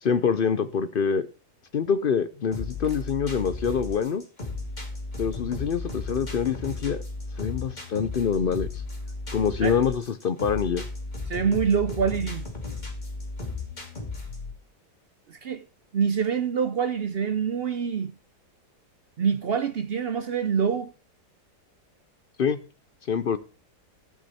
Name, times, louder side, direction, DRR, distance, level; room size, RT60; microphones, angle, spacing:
voice 1, 0.0-1.3 1.7-4.2 5.2-7.0 7.4-8.7 9.3-10.8 22.4-22.6 23.1-23.4, left 6 dB, 60° left, 0.5 m, -25 dB
sound 1, 2.5-14.5, left 3 dB, 25° left, 2.8 m, -35 dB
voice 2, 11.3-12.4 15.3-15.7 15.9-18.2 19.2-20.9, right 6 dB, 65° right, 0.6 m, -25 dB
13.5 x 8.4 x 4.3 m
omnidirectional pair, 1.7 m